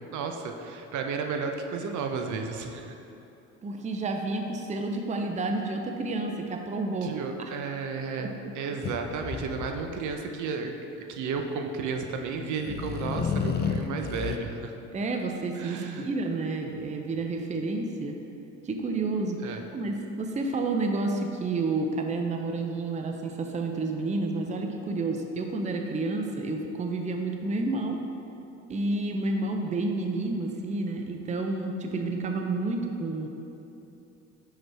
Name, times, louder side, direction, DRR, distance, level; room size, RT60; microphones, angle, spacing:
voice 1, 0.1-2.9 7.0-10.7 11.1-14.7 15.5-16.1 19.4-19.6, right 5 dB, 55° right, 4 dB, 0.8 m, -33 dB
voice 2, 3.6-7.1 7.4-7.5 8.2-8.5 14.9-18.2 18.6-28.0 28.7-33.3, right 3 dB, 20° right, 3 dB, 0.6 m, -30 dB
sound 1, 8.8-10.1 12.4-14.4, left 6 dB, 30° left, 0.5 m, -31 dB
6.0 x 5.1 x 4.7 m, 3.0 s
supercardioid pair, 85°, 35 cm